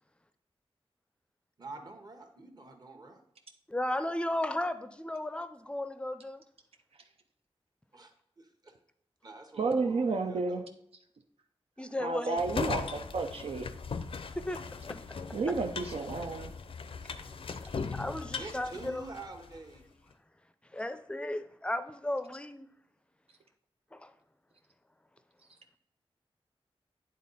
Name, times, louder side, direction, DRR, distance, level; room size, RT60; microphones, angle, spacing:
voice 1, 1.6-3.2 7.9-8.1 8.4-8.8 9.2-10.6 18.3-19.8, right 3 dB, 40° right, 1.1 m, -47 dB
voice 2, 3.7-6.4 11.8-12.4 14.4-15.2 17.0-17.1 17.7-19.0 20.7-22.7 23.9-24.1, left 1 dB, 10° left, 0.5 m, -35 dB
voice 3, 9.6-10.6 12.0-13.7 15.3-16.5, right 3 dB, 80° right, 0.6 m, -31 dB
sound 1, 12.4-19.6, left 5 dB, 65° left, 0.5 m, -39 dB
9.2 x 3.8 x 4.1 m
wide cardioid pair, 110°, 10 cm